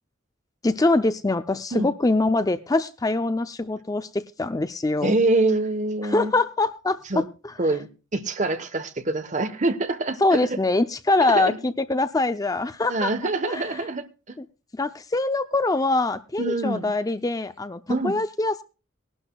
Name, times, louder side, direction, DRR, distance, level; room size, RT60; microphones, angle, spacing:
voice 1, 0.6-5.2 6.0-7.8 10.2-13.9 14.4-14.5 14.7-18.6, left 2 dB, 20° left, 0.5 m, -24 dB
voice 2, 5.0-6.3 7.1-7.2 7.6-10.4 11.3-11.6 12.9-14.4 16.4-16.9 17.9-18.1, right 2 dB, 40° right, 1.1 m, -25 dB
20.0 x 11.5 x 2.3 m
head